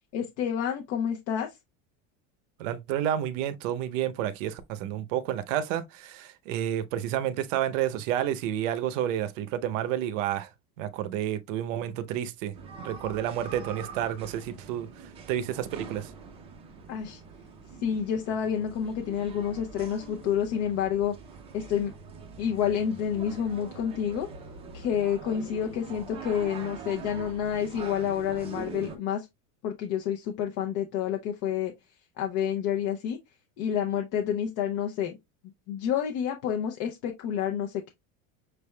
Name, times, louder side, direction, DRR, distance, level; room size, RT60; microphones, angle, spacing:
voice 1, 0.1-1.5 16.9-17.2 17.8-21.1 21.5-21.9 22.4-24.3 24.7-29.3 29.6-31.7 32.2-33.2 33.6-35.2 35.7-37.9, left 9 dB, 45° left, 0.6 m, -29 dB
voice 2, 2.6-10.5 10.8-14.9 15.3-16.1, right 11 dB, 90° right, 0.8 m, -30 dB
sound 1, 12.5-29.0, right 4 dB, 15° right, 0.5 m, -44 dB
6.3 x 3.4 x 2.2 m
cardioid pair, 175°, 36 cm